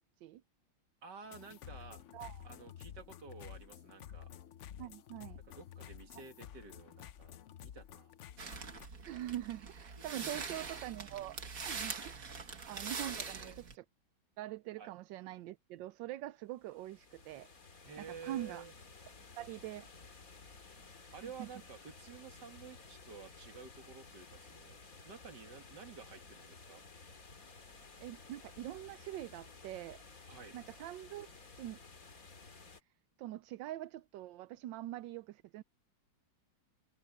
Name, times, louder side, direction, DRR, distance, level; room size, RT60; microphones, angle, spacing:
voice 1, 1.0-2.0 2.4-4.3 5.5-8.1 10.1-10.4 13.1-13.6 14.8-14.9 17.8-18.7 21.1-24.8 25.0-26.8 30.3-30.5, right 5 dB, 65° right, 2.7 m, -52 dB
sound 1, 1.2-8.9, left 10 dB, 75° left, 0.6 m, -51 dB
voice 2, 2.1-2.5 4.8-5.4 9.1-11.4 11.6-13.8 14.4-17.5 18.0-18.6 19.4-19.9 21.2-21.5 27.8-30.0 30.5-31.3 31.6-31.8 33.2-35.6, right 14 dB, 85° right, 1.3 m, -44 dB
sound 2, 8.4-13.8, right 5 dB, 50° right, 2.1 m, -43 dB
sound 3, 16.6-32.8, left 4 dB, 50° left, 2.7 m, -55 dB
omnidirectional pair, 2.0 m